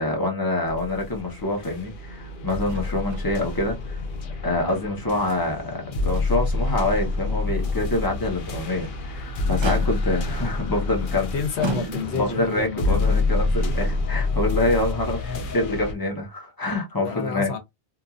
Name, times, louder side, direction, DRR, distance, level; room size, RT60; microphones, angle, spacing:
voice 1, 0.0-4.0 4.4-11.3 12.1-17.5, left 2 dB, 20° left, 1.0 m, -26 dB
sound 1, 0.7-15.9, left 3 dB, 55° left, 0.8 m, -27 dB
Motor vehicle (road), 2.7-3.3 3.6-3.7 4.2-5.2 5.6-5.7 6.3-6.4 8.6-9.0 9.6-10.3 11.0-11.2 11.6-12.4 13.5-13.6, right 3 dB, 40° right, 0.4 m, -34 dB
voice 2, 11.3-13.1 17.0-17.6, left 6 dB, 90° left, 1.1 m, -29 dB
2.9 x 2.5 x 2.4 m
omnidirectional pair, 1.1 m